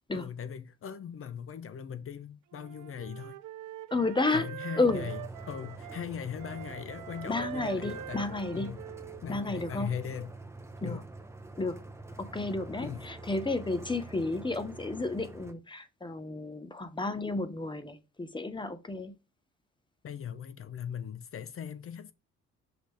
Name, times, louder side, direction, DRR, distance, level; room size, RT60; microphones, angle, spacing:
voice 1, 0.1-3.4 4.3-8.8 9.2-10.3 10.8-11.0 12.8-13.1 20.0-22.1, left 8 dB, 45° left, 0.7 m, -39 dB
Wind instrument woodwind instrument, 2.5-6.0 6.4-10.2, right 12 dB, 85° right, 0.6 m, -44 dB
voice 2, 3.9-4.5 4.8-5.1 7.2-8.8 9.3-9.9 10.8-11.0 11.6-11.8 12.2-19.1, left 3 dB, 15° left, 1.0 m, -32 dB
sound 1, 4.9-15.5, right 2 dB, 10° right, 0.9 m, -46 dB
6.0 x 5.1 x 3.3 m
cardioid pair, 90°, 30 cm